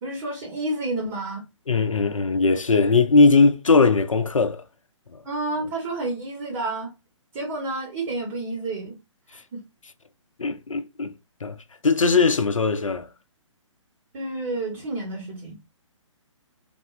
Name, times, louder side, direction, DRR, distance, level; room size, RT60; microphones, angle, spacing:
voice 1, 0.0-1.4 5.2-6.9 7.3-9.0 9.3-9.6 14.1-15.6, right 2 dB, 25° right, 0.9 m, -30 dB
voice 2, 1.7-4.6 10.4-11.1 11.4-11.6 11.8-13.1, left 4 dB, 80° left, 0.5 m, -19 dB
3.4 x 2.1 x 2.4 m
figure-of-eight pair, 135°, 17 cm